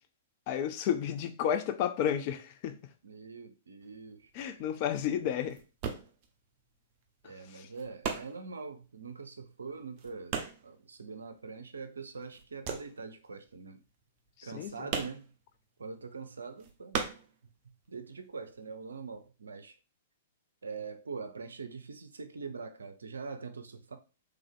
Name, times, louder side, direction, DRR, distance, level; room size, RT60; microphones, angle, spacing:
voice 1, 0.5-2.8 4.3-5.6 7.5-7.7 14.5-14.7, left 9 dB, 40° left, 0.5 m, -31 dB
voice 2, 3.0-4.6 7.2-13.8 14.4-15.3 15.8-17.0 17.4-17.5 17.9-19.8 20.6-24.0, right 4 dB, 70° right, 0.6 m, -43 dB
sound 1, 3.8-11.8 12.1-18.0 18.2-19.3, right 6 dB, 35° right, 0.9 m, -40 dB
3.5 x 3.4 x 3.5 m
figure-of-eight pair, 110°, 0 cm